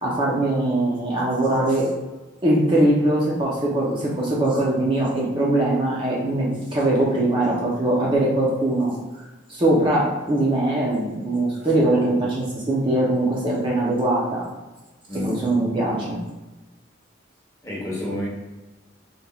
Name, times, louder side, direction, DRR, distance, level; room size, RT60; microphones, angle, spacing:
voice 1, 0.0-1.9 2.4-9.0 9.5-14.5 15.2-16.2, right 1 dB, 25° right, -5 dB, 0.7 m, -21 dB
voice 2, 15.1-15.5 17.6-18.3, left 1 dB, 15° left, -5 dB, 1.0 m, -29 dB
4.1 x 3.4 x 2.3 m, 1.1 s
head